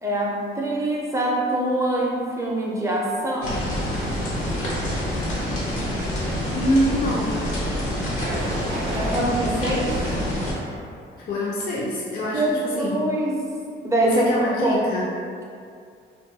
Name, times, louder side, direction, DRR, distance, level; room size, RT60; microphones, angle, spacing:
voice 1, 0.0-3.7 8.9-10.0 12.3-13.4 13.8-14.3 14.6-14.9, right 1 dB, 15° right, -4 dB, 0.4 m, -24 dB
sound 1, 3.4-10.5, equal, 85° left, 0.8 m, -27 dB
voice 2, 6.5-7.3 11.2-13.0 14.1-15.1, equal, 50° left, -5 dB, 0.4 m, -25 dB
sound 2, 8.2-9.3 9.8-10.9 11.4-11.8, right 2 dB, 75° right, 0.4 m, -35 dB
2.3 x 2.2 x 2.6 m, 2.3 s
cardioid pair, 90°, 20 cm